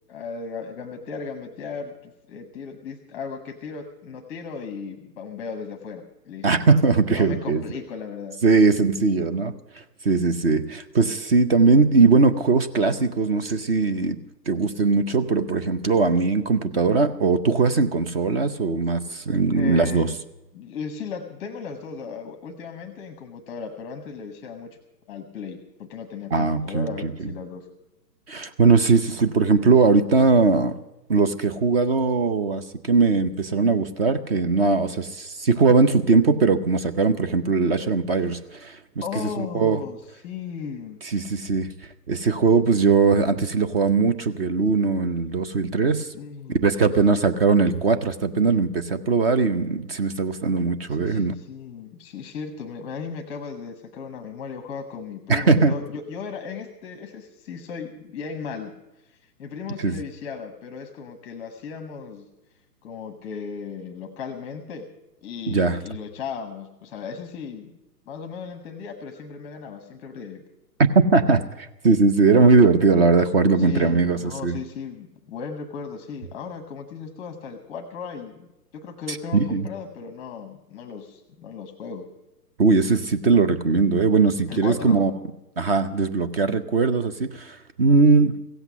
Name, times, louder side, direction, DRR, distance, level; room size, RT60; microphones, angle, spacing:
voice 1, 0.1-6.5 7.1-8.4 19.5-20.2 20.5-24.8 25.1-27.7 39.0-40.0 40.2-41.0 46.1-46.9 50.9-58.7 59.1-62.3 62.8-64.9 65.2-67.7 68.1-70.4 73.6-78.5 78.7-82.1 84.5-85.0, left 6 dB, 10° left, 8 dB, 0.8 m, -36 dB
voice 2, 6.4-7.6 8.4-14.2 14.5-20.1 26.3-27.1 28.3-30.8 31.1-38.8 39.1-39.8 41.0-41.7 42.1-46.1 46.5-51.3 55.3-55.8 59.8-60.0 65.5-65.8 71.1-74.6 79.1-79.7 82.6-85.1 85.6-88.3, right 4 dB, 35° right, 10 dB, 0.8 m, -20 dB
16.0 x 8.1 x 9.1 m, 0.93 s
hypercardioid pair, 150°, 50 cm